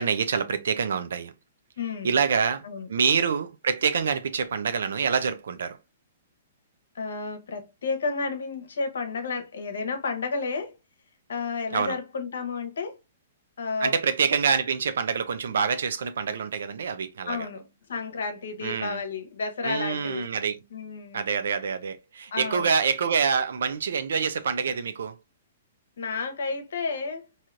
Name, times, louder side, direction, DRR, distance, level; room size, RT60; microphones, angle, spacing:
voice 1, 0.0-1.3 2.0-5.8 11.7-12.0 13.8-17.5 18.6-19.0 19.6-20.6 21.1-25.2, right 6 dB, 80° right, 0.3 m, -26 dB
voice 2, 1.8-2.2 2.6-2.9 6.9-10.8 11.3-13.0 13.6-14.0 17.3-17.6 17.9-20.3 20.7-21.2 22.3-22.7 26.0-27.3, left 4 dB, 80° left, 0.8 m, -31 dB
3.1 x 2.7 x 2.4 m
hypercardioid pair, 140°, 0 cm